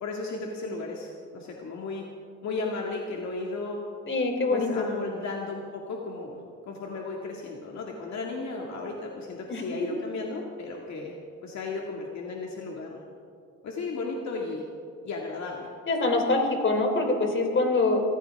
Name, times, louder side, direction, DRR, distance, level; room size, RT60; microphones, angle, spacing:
voice 1, 0.0-2.0 2.4-3.8 4.5-11.1 11.4-12.9 13.6-14.6 15.0-15.7, left 3 dB, 65° left, -1 dB, 2.2 m, -34 dB
voice 2, 4.1-4.9 9.5-9.6 15.9-18.0, left 3 dB, 40° left, 3 dB, 3.3 m, -24 dB
24.5 x 15.5 x 3.6 m, 2.3 s
cardioid pair, 90°, 30 cm